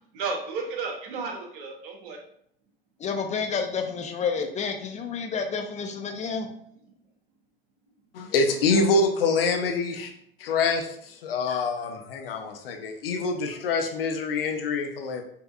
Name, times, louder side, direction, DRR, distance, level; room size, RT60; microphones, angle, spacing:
voice 1, 0.1-2.2 6.7-6.8, right 4 dB, 60° right, 2 dB, 1.0 m, -33 dB
voice 2, 3.0-6.5, left 5 dB, 25° left, 4 dB, 0.5 m, -29 dB
voice 3, 8.1-10.1 10.4-15.2, left 3 dB, 70° left, 4 dB, 0.7 m, -25 dB
5.3 x 2.9 x 2.3 m, 0.68 s
figure-of-eight pair, 75°, 30 cm